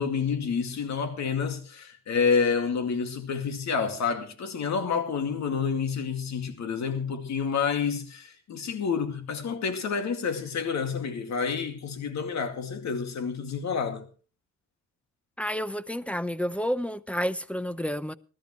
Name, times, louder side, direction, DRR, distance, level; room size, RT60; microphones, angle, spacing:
voice 1, 0.0-14.1, left 6 dB, 65° left, 2.4 m, -29 dB
voice 2, 15.4-18.1, equal, 5° left, 0.7 m, -30 dB
20.5 x 12.5 x 3.2 m
cardioid pair, 90°, 30 cm